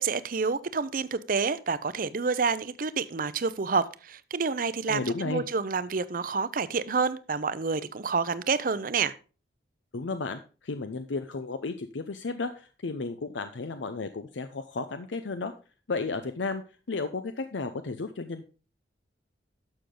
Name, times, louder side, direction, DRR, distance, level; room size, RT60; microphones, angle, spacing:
voice 1, 0.0-9.1, right 5 dB, 50° right, 0.6 m, -28 dB
voice 2, 4.9-5.4 9.9-15.5 15.9-16.6 16.9-18.4, left 3 dB, 90° left, 0.7 m, -33 dB
11.5 x 6.7 x 3.8 m
head